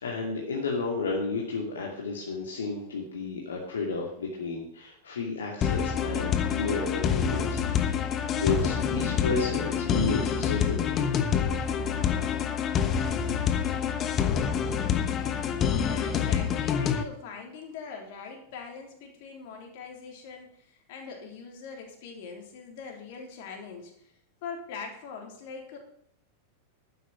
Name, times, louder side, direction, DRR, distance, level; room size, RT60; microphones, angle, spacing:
voice 1, 0.0-8.0 8.3-11.1, left 3 dB, 65° left, -2 dB, 2.5 m, -32 dB
sound 1, 5.6-17.0, left 8 dB, 30° left, 1.2 m, -27 dB
voice 2, 15.6-24.1 24.4-25.8, left 5 dB, 50° left, 2 dB, 3.6 m, -42 dB
12.0 x 9.6 x 5.8 m, 0.71 s
figure-of-eight pair, 90°, 0 cm